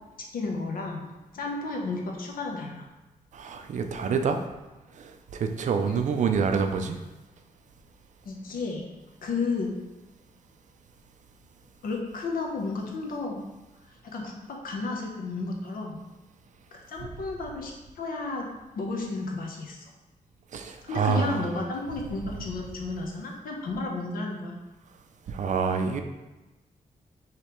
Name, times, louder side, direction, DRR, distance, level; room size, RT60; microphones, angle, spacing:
voice 1, 0.3-1.1 1.3-2.8 5.9-6.1 8.2-8.8 9.2-9.7 11.8-13.5 14.0-16.0 16.7-18.5 18.7-19.8 20.8-24.6, left 3 dB, 80° left, 1 dB, 0.8 m, -32 dB
voice 2, 3.3-4.4 5.0-7.0 20.5-21.5 25.3-26.0, right 5 dB, 60° right, 6 dB, 0.4 m, -27 dB
5.0 x 3.2 x 3.1 m, 1.1 s
wide cardioid pair, 165°, 15 cm